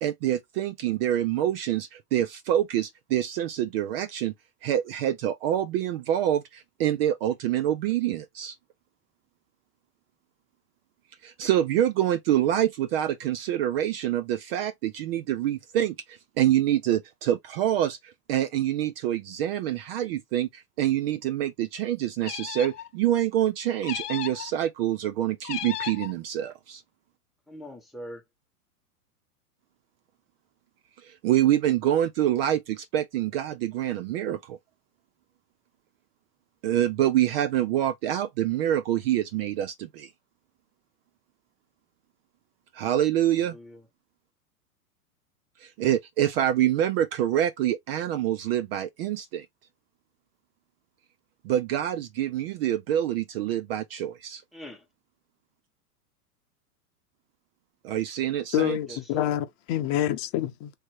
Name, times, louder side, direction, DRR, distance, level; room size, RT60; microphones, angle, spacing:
voice 1, 0.0-4.3 4.6-8.6 11.2-26.8 31.0-34.6 36.6-40.1 42.7-43.6 45.6-49.5 51.4-54.4 57.8-59.0, right 11 dB, 40° right, 0.4 m, -26 dB
sound 1, 22.2-22.9 23.8-24.5 25.4-26.1, left 12 dB, 80° left, 0.7 m, -35 dB
voice 2, 27.5-28.2 43.3-43.9 54.5-54.9 58.8-59.4, equal, ahead, 1.0 m, -43 dB
voice 3, 58.5-60.7, left 12 dB, 40° left, 0.8 m, -27 dB
3.3 x 2.9 x 4.4 m
hypercardioid pair, 115°, 47 cm